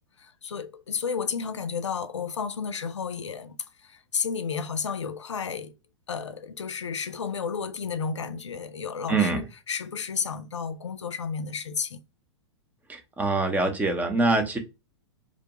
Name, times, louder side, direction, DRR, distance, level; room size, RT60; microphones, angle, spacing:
voice 1, 0.2-5.7 6.1-12.0, left 6 dB, 80° left, 0.4 m, -32 dB
voice 2, 9.1-9.4 12.9-14.6, right 3 dB, 10° right, 0.6 m, -24 dB
2.5 x 2.2 x 2.9 m
figure-of-eight pair, 100°, 15 cm